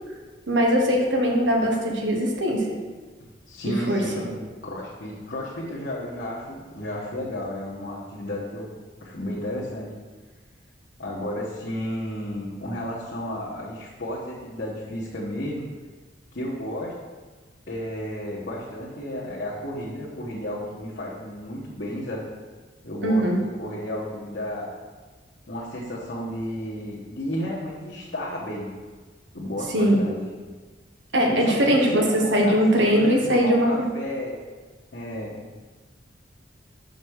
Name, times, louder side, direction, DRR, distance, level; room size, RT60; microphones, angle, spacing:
voice 1, 0.5-2.7 3.7-4.0 23.0-23.4 29.7-30.0 31.1-33.7, equal, 80° right, 0 dB, 1.3 m, -21 dB
voice 2, 3.5-4.3 4.6-8.7 9.0-9.9 11.0-15.7 16.3-17.0 17.7-22.3 22.8-24.7 25.5-28.7 29.3-30.2 31.3-34.4 34.9-35.4, left 1 dB, 65° left, -7 dB, 1.3 m, -32 dB
5.9 x 5.3 x 6.3 m, 1.4 s
head